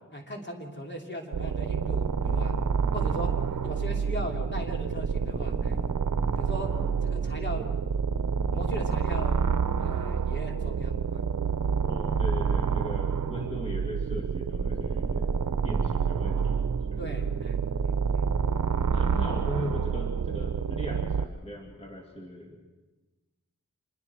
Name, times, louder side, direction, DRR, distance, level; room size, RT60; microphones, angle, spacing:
voice 1, 0.1-2.6 2.9-3.3 3.6-5.8 6.3-6.7 7.0-7.8 8.5-9.4 9.7-11.2 17.0-18.3, equal, 35° left, 1 dB, 3.2 m, -38 dB
sound 1, 1.3-21.2, right 6 dB, 70° right, 0.8 m, -28 dB
voice 2, 3.1-3.8 6.7-6.9 11.8-15.3 15.6-17.1 18.9-22.6, equal, 20° left, 0 dB, 2.5 m, -39 dB
26.5 x 22.0 x 4.6 m, 1.2 s
wide cardioid pair, 80°, 32 cm